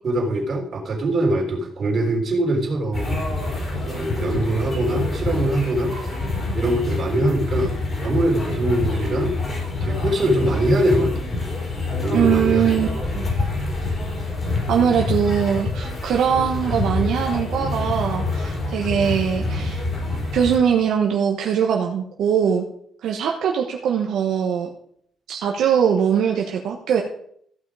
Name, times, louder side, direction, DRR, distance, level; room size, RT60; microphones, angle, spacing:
voice 1, 0.0-3.2 3.9-6.0 6.5-7.7 8.0-9.4 9.8-11.1 12.0-13.0 14.8-14.9, right 1 dB, 50° right, 1 dB, 3.7 m, -22 dB
sound 1, 2.9-20.6, left 2 dB, 35° left, 4.5 m, -26 dB
voice 2, 12.1-13.3 14.7-19.8 20.3-22.6 23.0-24.7 25.3-27.0, right 8 dB, 75° right, 1 dB, 1.2 m, -21 dB
15.0 x 5.7 x 4.9 m, 0.67 s
cardioid pair, 90°, 0 cm